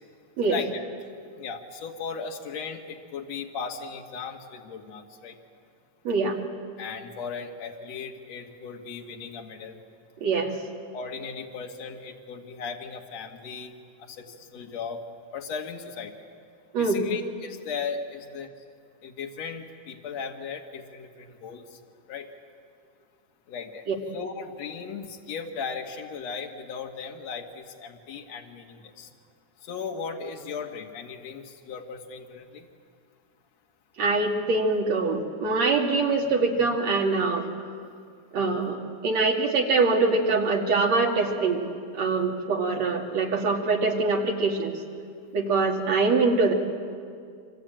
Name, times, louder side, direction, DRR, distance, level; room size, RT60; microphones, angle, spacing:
voice 1, 0.4-0.9 1.4-5.3 6.8-9.8 10.9-13.7 14.0-15.0 15.3-16.1 16.8-18.5 19.0-21.8 22.1-22.3 23.5-23.8 24.1-29.1 29.6-32.7, left 5 dB, 65° left, 1 dB, 2.9 m, -37 dB
voice 2, 6.0-6.4 10.2-10.5 16.7-17.1 23.9-24.0 34.0-37.5 38.3-41.6 41.9-44.8 45.3-46.5, right 3 dB, 65° right, 1 dB, 3.5 m, -24 dB
26.0 x 25.5 x 8.9 m, 2.2 s
omnidirectional pair, 3.4 m